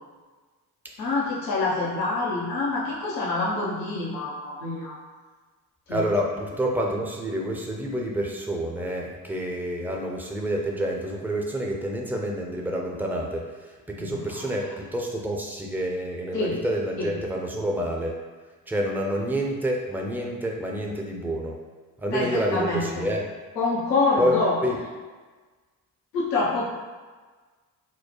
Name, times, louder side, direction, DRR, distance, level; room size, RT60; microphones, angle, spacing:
voice 1, 1.0-4.9 5.9-6.0 14.0-14.7 16.3-16.6 17.0-17.1 22.1-23.0 23.6-24.6 26.1-26.6, left 3 dB, 90° left, -6 dB, 0.8 m, -26 dB
voice 2, 5.9-18.1 18.7-21.6 22.0-23.3 24.2-24.8, equal, 5° right, -1 dB, 0.6 m, -28 dB
4.5 x 2.1 x 2.9 m, 1.4 s
hypercardioid pair, 50°, 47 cm